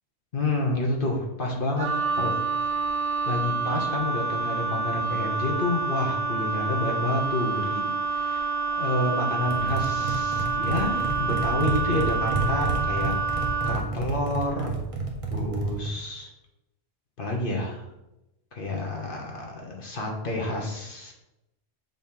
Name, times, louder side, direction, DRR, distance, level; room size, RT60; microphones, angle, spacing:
voice 1, 0.3-1.9 2.2-2.3 3.2-13.1 13.7-14.8 15.3-16.3 17.2-17.8 18.5-21.1, left 2 dB, 55° left, 0 dB, 1.2 m, -29 dB
Wind instrument woodwind instrument, 1.8-13.9, right 4 dB, 60° right, 1.1 m, -28 dB
Galloping Fingers, 9.4-15.9, right 3 dB, 30° right, 1.2 m, -30 dB
7.4 x 3.1 x 5.6 m, 0.91 s
omnidirectional pair, 1.1 m